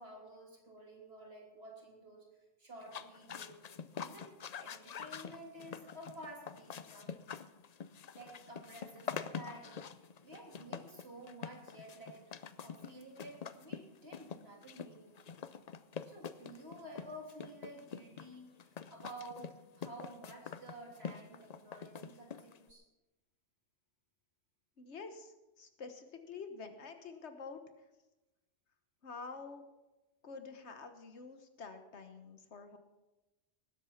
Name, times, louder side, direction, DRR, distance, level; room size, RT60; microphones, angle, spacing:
voice 1, 0.0-2.3 2.6-3.7 4.0-7.2 8.2-15.4 16.1-22.8, right 1 dB, 55° right, -1 dB, 3.4 m, -52 dB
sound 1, 2.8-22.7, left 7 dB, 50° left, 0.5 m, -46 dB
voice 2, 24.8-27.6 29.0-29.6 30.2-32.8, left 4 dB, 65° left, 7 dB, 1.5 m, -48 dB
19.0 x 8.1 x 5.8 m, 1.1 s
omnidirectional pair, 1.2 m